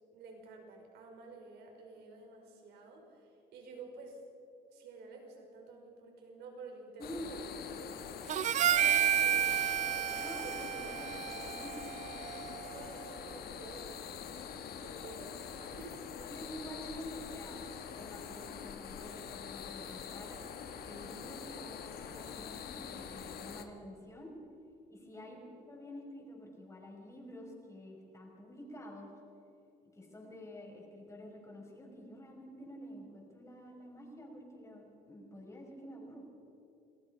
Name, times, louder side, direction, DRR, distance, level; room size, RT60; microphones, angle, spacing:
voice 1, 0.1-4.2 4.7-8.0 8.6-11.0 11.5-11.6 12.6-14.2 14.8-16.1 25.2-25.6, right 3 dB, 75° right, 2 dB, 5.1 m, -51 dB
sound 1, 7.0-23.6, left 7 dB, 65° left, 1.7 m, -45 dB
voice 2, 7.0-7.4 10.2-11.8 16.2-17.6 17.9-20.4 20.8-24.3 24.9-25.4 25.7-29.1 29.9-36.2, equal, 15° left, 0 dB, 6.1 m, -49 dB
Harmonica, 8.3-12.8, right 10 dB, 45° right, 0.4 m, -31 dB
27.5 x 18.5 x 5.3 m, 2.8 s
cardioid pair, 110°, 17 cm